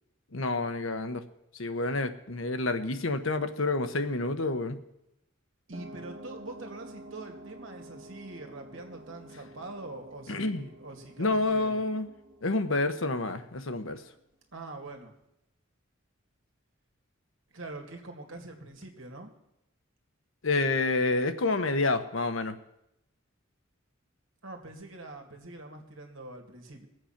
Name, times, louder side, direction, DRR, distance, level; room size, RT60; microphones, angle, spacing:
voice 1, 0.3-1.2 1.5-4.8 10.3-10.7 11.2-12.1 12.4-14.0 20.4-22.6, left 2 dB, 70° left, 9 dB, 1.1 m, -28 dB
sound 1, 5.7-13.9, right 1 dB, 40° right, 2.2 m, -49 dB
voice 2, 5.7-11.7 14.5-15.1 17.5-19.3 24.4-26.9, right 2 dB, 70° right, 3 dB, 2.2 m, -44 dB
20.5 x 7.9 x 5.9 m, 0.84 s
head